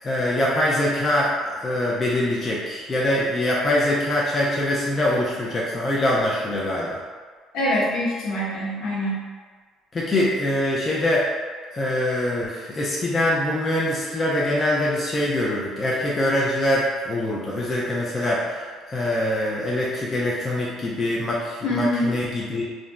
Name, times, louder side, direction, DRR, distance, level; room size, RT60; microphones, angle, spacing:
voice 1, 0.0-7.0 9.9-11.3 11.7-18.6 18.9-22.6, left 1 dB, 25° left, -5 dB, 0.4 m, -23 dB
voice 2, 7.5-9.2 21.6-22.1, equal, 75° left, -8 dB, 1.0 m, -24 dB
2.4 x 2.0 x 3.3 m, 1.5 s
cardioid pair, 135°, 0 cm